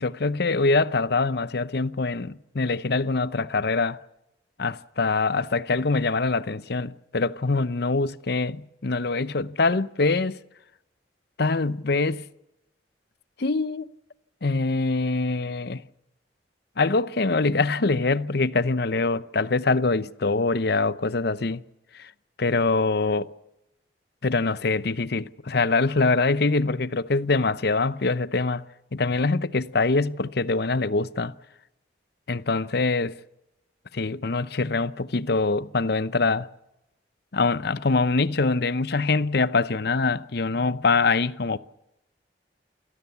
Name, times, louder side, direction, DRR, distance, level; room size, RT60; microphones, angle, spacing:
voice 1, 0.0-4.0 4.6-10.4 11.4-12.2 13.4-13.9 14.4-15.8 16.8-21.6 21.9-22.1 22.4-23.3 24.2-28.6 28.9-31.3 32.3-33.2 33.9-36.5 37.3-41.6, left 3 dB, 60° left, 0.8 m, -24 dB
28.0 x 18.0 x 7.0 m
head